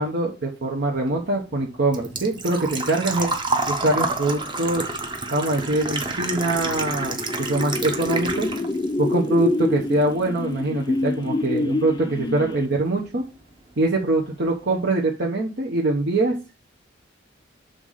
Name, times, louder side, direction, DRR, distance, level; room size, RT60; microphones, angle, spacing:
voice 1, 0.0-3.3 3.7-4.8 5.3-8.5 9.0-13.2 13.8-16.3, right 2 dB, 55° right, -1 dB, 1.0 m, -23 dB
Engine / Trickle dribble / Fill (with liquid), 1.0-8.9 9.2-10.2 10.5-10.6 12.5-12.6 12.8-13.1 13.5-13.6 13.9-14.0, right 3 dB, 25° right, 0.9 m, -29 dB
sound 1, 6.4-12.8, left 2 dB, 20° left, 0.4 m, -27 dB
6.8 x 3.7 x 5.5 m, 0.31 s
head